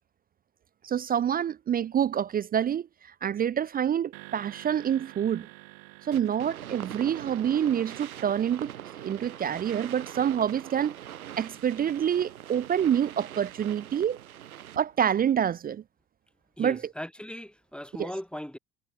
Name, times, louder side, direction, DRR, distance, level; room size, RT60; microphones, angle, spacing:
voice 1, 0.8-5.5 6.0-8.7 9.0-11.0 11.4-14.2 14.8-15.8 16.6-16.8 18.0-18.1, right 9 dB, 20° right, 0.5 m, -27 dB
sound 1, 4.1-10.5, right 40 dB or more, 60° right, 5.6 m, -51 dB
sound 2, 6.1-15.0, right 11 dB, 75° right, 2.4 m, -42 dB
voice 2, 16.6-18.6, equal, ahead, 4.3 m, -38 dB
figure-of-eight pair, 65°, 43 cm